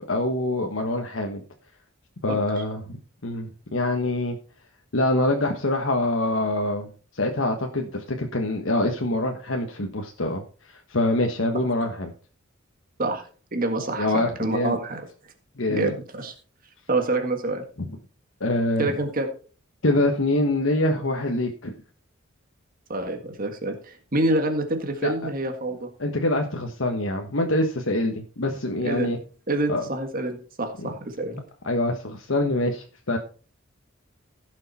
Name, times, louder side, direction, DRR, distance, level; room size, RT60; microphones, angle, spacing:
voice 1, 0.1-1.4 2.2-3.0 3.2-4.4 4.9-6.9 7.1-10.4 10.7-12.1 14.0-14.8 15.6-15.9 18.4-19.0 19.8-21.7 25.0-25.3 26.0-29.2 29.7-29.8 30.8-30.9 31.6-33.2, left 1 dB, 65° left, 3 dB, 1.3 m, -25 dB
voice 2, 2.3-2.6 13.0-15.1 15.7-16.3 16.9-17.6 18.8-19.3 22.9-25.9 28.8-29.1 29.5-31.4, right 2 dB, 45° right, 5 dB, 1.7 m, -27 dB
16.0 x 6.5 x 4.2 m, 0.39 s
head